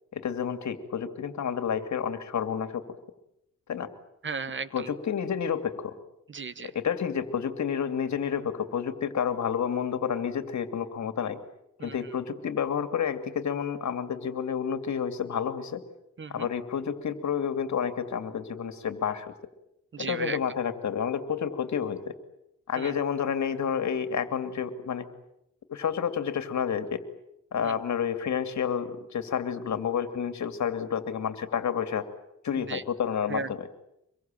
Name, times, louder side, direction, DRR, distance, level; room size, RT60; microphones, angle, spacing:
voice 1, 0.1-2.8 3.7-3.9 4.7-5.9 6.7-11.4 11.8-15.8 16.3-19.3 20.0-22.1 22.7-25.1 25.7-27.0 27.5-32.0 32.4-33.7, left 7 dB, 60° left, 9 dB, 2.7 m, -30 dB
voice 2, 4.2-4.9 6.3-6.7 11.8-11.9 16.2-16.5 19.9-20.4 22.8-22.9 27.6-27.7 32.7-32.8 33.3-33.5, right 5 dB, 40° right, 16 dB, 1.0 m, -35 dB
25.0 x 22.5 x 9.2 m, 0.81 s
wide cardioid pair, 120°, 31 cm